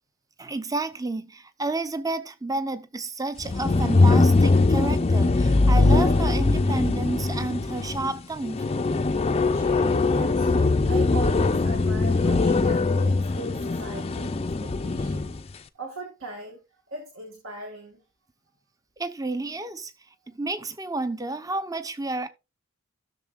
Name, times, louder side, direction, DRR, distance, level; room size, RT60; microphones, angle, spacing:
voice 1, 0.4-8.7 19.0-19.9 20.3-22.3, right 2 dB, 15° right, 0.7 m, -31 dB
sound 1, 3.4-15.4, left 3 dB, 30° left, 0.5 m, -21 dB
voice 2, 9.2-10.6 10.9-16.6 16.9-18.0, right 3 dB, 70° right, 1.9 m, -39 dB
16.0 x 6.5 x 2.4 m
head